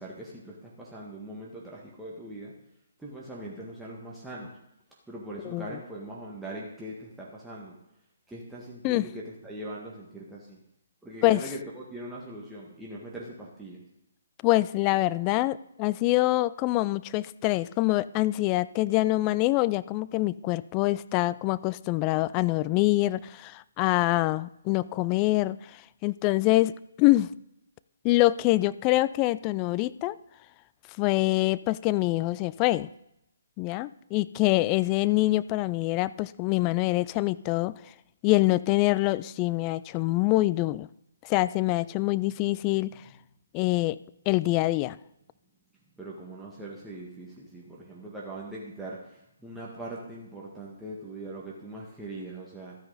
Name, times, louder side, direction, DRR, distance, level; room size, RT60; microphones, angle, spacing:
voice 1, 0.0-2.5 3.0-4.5 5.1-7.8 8.3-10.6 11.0-13.8 42.9-43.0 46.0-52.8, right 1 dB, 5° right, -6 dB, 1.8 m, -41 dB
voice 2, 14.4-25.6 26.0-27.3 28.0-30.2 31.0-32.9 33.6-37.7 38.2-40.9 41.3-42.9 43.5-44.0 44.3-45.0, left 18 dB, 25° left, 17 dB, 0.3 m, -25 dB
13.0 x 9.4 x 4.1 m, 0.82 s
figure-of-eight pair, 140°, 0 cm